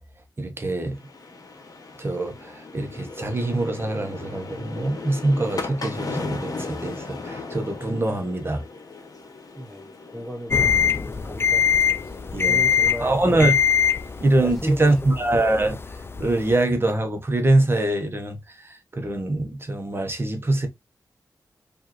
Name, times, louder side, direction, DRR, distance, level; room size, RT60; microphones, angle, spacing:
voice 1, 0.4-1.0 2.0-8.6 12.3-12.6 13.0-13.6 14.2-15.8 16.2-20.7, right 2 dB, 35° right, 1.0 m, -23 dB
sound 1, 0.9-14.4, left 3 dB, 60° left, 1.0 m, -37 dB
voice 2, 9.6-11.7 12.5-13.2 14.4-15.2, equal, ahead, 0.7 m, -36 dB
sound 2, 10.5-16.6, left 7 dB, 35° left, 0.3 m, -23 dB
4.6 x 2.6 x 2.9 m
wide cardioid pair, 80°, 7 cm